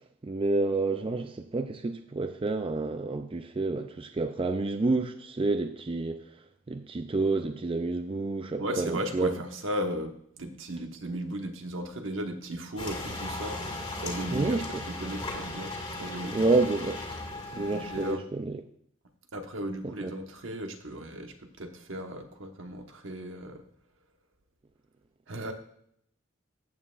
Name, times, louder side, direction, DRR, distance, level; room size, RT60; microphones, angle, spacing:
voice 1, 0.2-6.2 6.7-9.3 14.3-14.8 16.3-17.1 17.5-18.6 20.0-20.1, right 3 dB, 30° right, 0.4 m, -29 dB
voice 2, 8.6-13.6 14.0-16.5 17.6-18.2 19.3-23.6 25.3-25.5, equal, 70° right, 1.3 m, -36 dB
sound 1, 12.8-18.1, left 2 dB, 30° left, 2.0 m, -37 dB
14.0 x 8.6 x 2.5 m
head